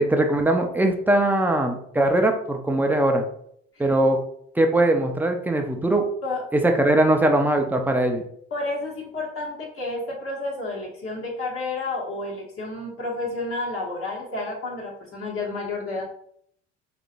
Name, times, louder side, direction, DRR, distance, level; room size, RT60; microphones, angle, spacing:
voice 1, 0.0-3.2 3.8-4.2 4.6-6.1 6.5-8.2, right 1 dB, 5° right, 4 dB, 0.6 m, -21 dB
voice 2, 8.5-16.0, left 2 dB, 40° left, -4 dB, 1.2 m, -30 dB
3.6 x 2.9 x 2.5 m, 0.67 s
hypercardioid pair, 70°, 32 cm